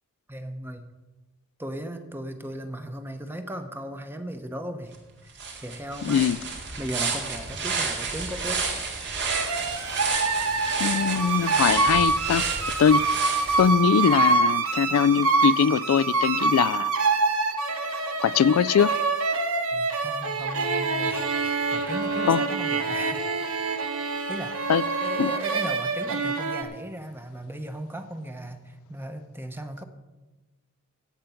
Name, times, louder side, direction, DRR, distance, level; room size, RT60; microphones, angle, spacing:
voice 1, 0.3-0.9 1.6-5.0 5.2-6.3 6.8-8.6 19.7-23.9 24.3-24.6 25.0-29.8, right 1 dB, 10° right, 1.0 m, -37 dB
sound 1, 4.9-5.0 5.3-14.1, right 4 dB, 55° right, 2.2 m, -31 dB
voice 2, 6.0-6.4 10.8-12.5 12.8-13.1 13.6-16.9 18.2-18.9 22.3-22.4 24.7-24.8 25.2-25.3, left 7 dB, 80° left, 0.3 m, -22 dB
sound 2, 9.3-26.6, right 3 dB, 75° right, 1.2 m, -26 dB
15.5 x 8.2 x 5.8 m
head